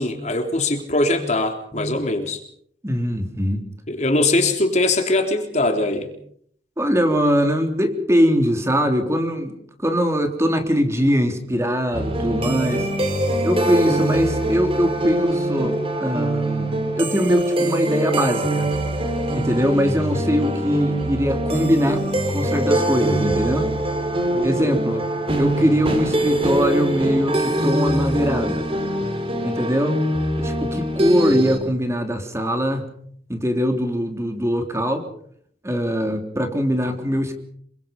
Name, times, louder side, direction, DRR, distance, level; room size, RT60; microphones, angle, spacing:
voice 1, 0.0-2.4 3.9-6.1 24.3-24.8, left 2 dB, 40° left, 5 dB, 3.6 m, -22 dB
voice 2, 1.7-2.1 2.8-3.6 6.8-13.0 13.4-18.7 19.3-23.7 24.4-25.1 25.4-28.7 29.4-30.0 30.4-32.9 33.3-35.1 35.6-37.3, equal, 15° right, 5 dB, 3.4 m, -22 dB
sound 1, 11.9-31.6, right 1 dB, 30° right, 4.2 m, -23 dB
27.5 x 24.0 x 5.4 m, 0.64 s
head